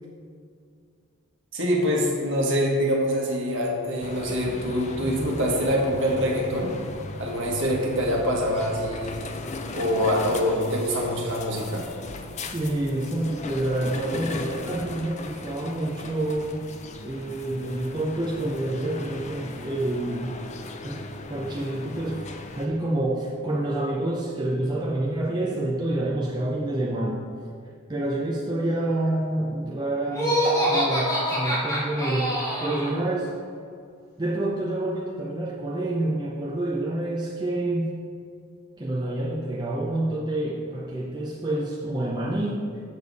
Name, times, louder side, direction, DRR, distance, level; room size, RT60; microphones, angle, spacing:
voice 1, 1.5-6.8 7.2-9.3 9.7-11.9, equal, 55° right, -2 dB, 1.5 m, -25 dB
sound 1, 4.0-22.7, left 3 dB, 30° left, 0.4 m, -38 dB
voice 2, 12.5-16.7 17.0-20.4 20.8-21.0 21.3-27.3 27.9-33.3 34.2-37.9 38.8-42.7, right 1 dB, 20° right, -4 dB, 0.6 m, -28 dB
Laughter, 30.1-32.9, equal, 15° left, 1.6 m, -25 dB
6.9 x 6.6 x 4.0 m, 2.3 s
head